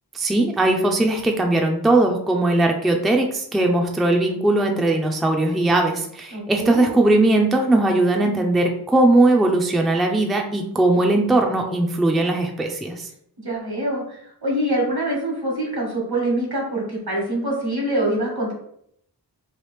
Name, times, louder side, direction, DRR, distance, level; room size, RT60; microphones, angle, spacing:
voice 1, 0.1-13.1, right 2 dB, ahead, 2 dB, 0.4 m, -19 dB
voice 2, 6.3-6.9 13.4-18.5, right 1 dB, 65° right, -2 dB, 1.3 m, -25 dB
3.2 x 2.4 x 3.2 m, 0.70 s
wide cardioid pair, 40°, 40 cm